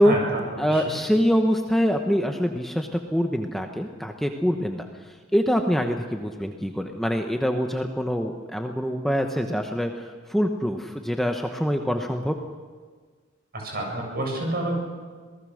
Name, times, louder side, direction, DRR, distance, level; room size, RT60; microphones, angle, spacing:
voice 1, 0.0-0.4 0.7-1.0 13.5-14.7, right 1 dB, 50° right, 0 dB, 7.6 m, -28 dB
voice 2, 0.6-12.3, equal, ahead, 3 dB, 1.1 m, -24 dB
27.0 x 19.0 x 6.5 m, 1.5 s
head